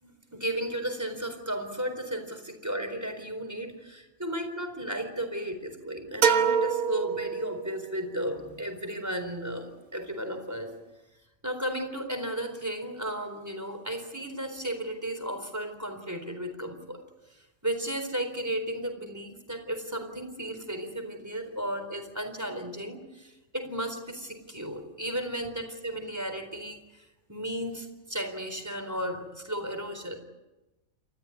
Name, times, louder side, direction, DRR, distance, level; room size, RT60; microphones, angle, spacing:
voice 1, 0.0-10.7 11.4-17.0 17.6-30.2, right 1 dB, 10° right, 5 dB, 4.0 m, -34 dB
sound 1, 6.2-8.0, right 6 dB, 85° right, 1.9 m, -26 dB
28.0 x 14.0 x 9.8 m, 1.0 s
omnidirectional pair, 1.4 m